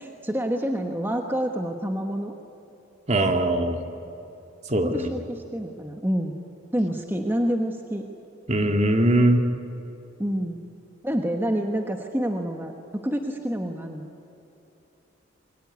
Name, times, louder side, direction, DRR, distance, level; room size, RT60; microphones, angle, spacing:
voice 1, 0.0-2.3 4.8-6.4 6.7-8.1 10.2-10.6 11.0-14.1, equal, 10° right, 3 dB, 1.3 m, -28 dB
voice 2, 3.1-3.8 4.7-5.1 8.5-9.4, right 1 dB, 35° right, 5 dB, 1.9 m, -21 dB
27.5 x 22.5 x 9.5 m, 3.0 s
head